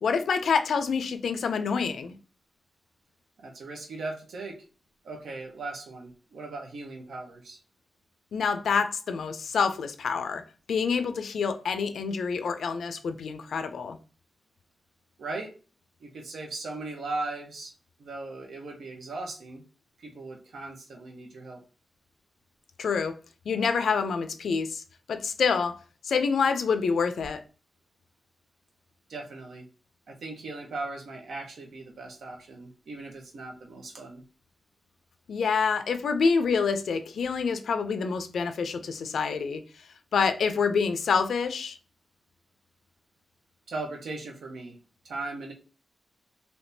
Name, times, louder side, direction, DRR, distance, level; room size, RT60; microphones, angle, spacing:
voice 1, 0.0-2.1 8.3-10.4 10.7-14.0 22.8-23.1 23.5-24.8 25.1-25.8 26.0-27.4 35.3-39.6 40.1-41.8, left 5 dB, 80° left, 0.4 m, -27 dB
voice 2, 3.4-4.6 5.0-7.6 15.2-15.5 16.0-17.7 18.0-19.6 20.0-21.6 29.1-29.6 30.1-34.2 43.7-44.8 45.0-45.5, right 3 dB, 75° right, 0.9 m, -38 dB
3.4 x 2.7 x 2.7 m
wide cardioid pair, 155°, 0 cm